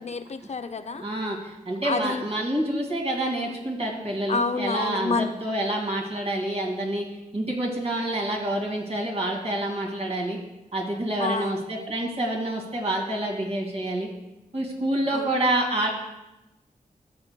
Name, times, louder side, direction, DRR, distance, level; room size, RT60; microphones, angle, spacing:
voice 1, 0.0-1.0 1.8-2.3 4.3-5.3 11.2-11.6 15.1-15.3, left 4 dB, 50° left, 9 dB, 0.4 m, -28 dB
voice 2, 1.0-7.1 7.3-10.4 10.7-14.1 14.5-15.9, right 1 dB, 45° right, -1 dB, 2.1 m, -27 dB
13.5 x 7.9 x 2.2 m, 0.94 s
wide cardioid pair, 90°, 15 cm